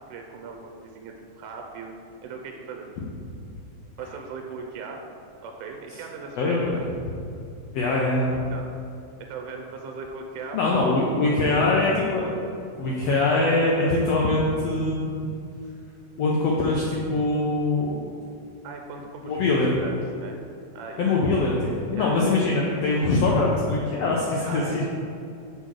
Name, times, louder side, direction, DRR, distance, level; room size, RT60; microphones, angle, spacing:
voice 1, 0.0-1.9 2.2-2.9 4.0-5.0 5.4-6.8 8.3-8.7 9.3-11.0 18.6-20.4 20.7-21.2 21.9-22.3 24.5-24.9, right 4 dB, 80° right, 2 dB, 2.1 m, -39 dB
voice 2, 6.4-6.8 7.7-8.3 10.5-12.3 12.8-15.2 16.2-18.0 19.2-19.7 21.0-21.5 21.9-24.8, left 2 dB, 80° left, -3 dB, 1.4 m, -23 dB
6.1 x 4.1 x 6.1 m, 2.5 s
omnidirectional pair, 3.7 m